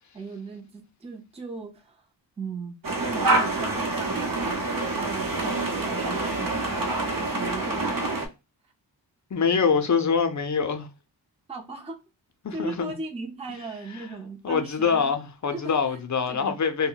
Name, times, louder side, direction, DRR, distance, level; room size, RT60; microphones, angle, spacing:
voice 1, 0.1-2.0 2.4-8.2 11.5-12.0 12.5-15.1 15.5-16.0 16.3-16.5, right 3 dB, 15° right, 0.6 m, -38 dB
sound 1, 2.8-8.3, right 2 dB, 50° right, 0.8 m, -26 dB
voice 2, 9.3-10.9 12.4-12.9 13.9-14.1 14.4-16.9, left 6 dB, 45° left, 0.6 m, -24 dB
2.2 x 2.1 x 3.7 m
wide cardioid pair, 65°, 43 cm